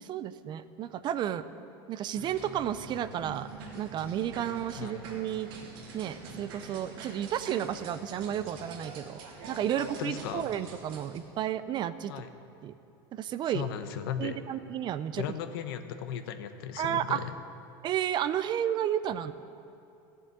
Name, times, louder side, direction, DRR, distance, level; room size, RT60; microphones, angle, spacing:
voice 1, 0.0-1.4 1.9-3.5 3.7-5.5 5.9-9.2 9.5-12.2 12.6-12.7 13.1-13.7 14.2-15.2 16.8-17.2 17.8-19.3, right 10 dB, 40° right, 13 dB, 0.6 m, -32 dB
sound 1, 2.1-11.2, right 3 dB, 70° right, 2.8 m, -45 dB
voice 2, 9.8-10.5 12.1-12.3 13.5-14.4 15.1-17.3, left 9 dB, 75° left, 8 dB, 1.1 m, -36 dB
14.5 x 7.6 x 9.4 m, 2.6 s
supercardioid pair, 120°, 12 cm